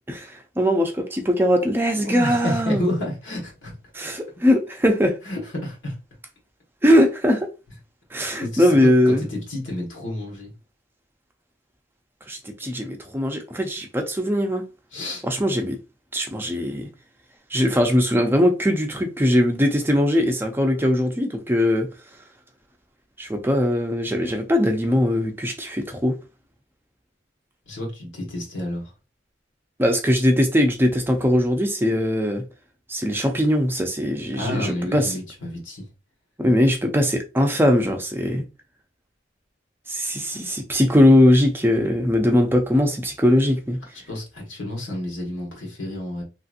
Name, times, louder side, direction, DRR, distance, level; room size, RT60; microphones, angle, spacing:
voice 1, 0.1-2.8 3.9-5.2 6.8-7.5 8.1-9.2 12.3-14.6 15.2-15.8 16.1-16.9 17.5-21.9 23.2-26.2 29.8-32.5 32.9-35.1 36.4-38.4 39.9-43.8, left 1 dB, 10° right, 0.4 m, -20 dB
voice 2, 1.9-3.8 5.2-5.9 8.1-10.5 14.9-15.2 27.7-28.9 34.3-35.9 43.9-46.2, left 1 dB, 90° left, 1.5 m, -30 dB
3.0 x 2.7 x 2.4 m
head